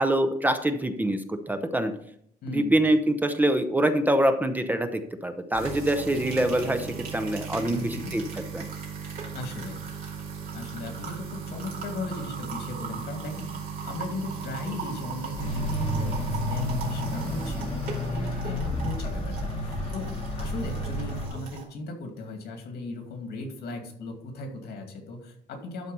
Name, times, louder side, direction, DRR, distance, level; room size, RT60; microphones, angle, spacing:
voice 1, 0.0-1.9 2.5-8.6, right 1 dB, 10° right, 8 dB, 0.6 m, -25 dB
voice 2, 2.4-2.7 7.7-8.1 9.3-9.9 10.5-13.5 13.8-20.1 20.4-25.9, left 2 dB, 85° left, 4 dB, 2.3 m, -37 dB
sound 1, 5.5-21.6, right 6 dB, 60° right, 2.7 m, -37 dB
sound 2, 15.3-21.3, left 1 dB, 40° left, 2.7 m, -31 dB
12.0 x 4.1 x 5.4 m, 0.69 s
cardioid pair, 160°, 16 cm